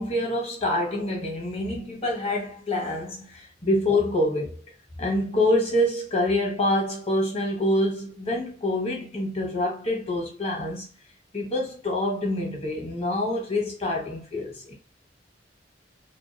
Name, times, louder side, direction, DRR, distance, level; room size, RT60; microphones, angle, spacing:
voice 1, 0.0-4.6 5.0-10.9 11.3-14.7, left 1 dB, 35° left, 1.0 m, -26 dB
2.5 x 2.3 x 2.6 m
head